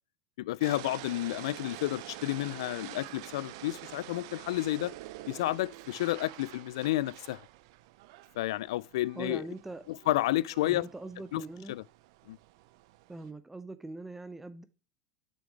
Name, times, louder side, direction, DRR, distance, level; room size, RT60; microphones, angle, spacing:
voice 1, 0.4-4.9 5.3-7.4 8.4-9.4 9.9-10.9 11.3-11.4 11.7-11.8 12.3-12.4, left 16 dB, 75° left, 0.3 m, -31 dB
sound 1, 0.6-13.3, right 16 dB, 65° right, 0.5 m, -47 dB
voice 2, 9.2-9.8 10.7-11.8 13.1-14.6, right 2 dB, 10° right, 0.6 m, -42 dB
7.0 x 6.1 x 3.2 m
hypercardioid pair, 90°, 3 cm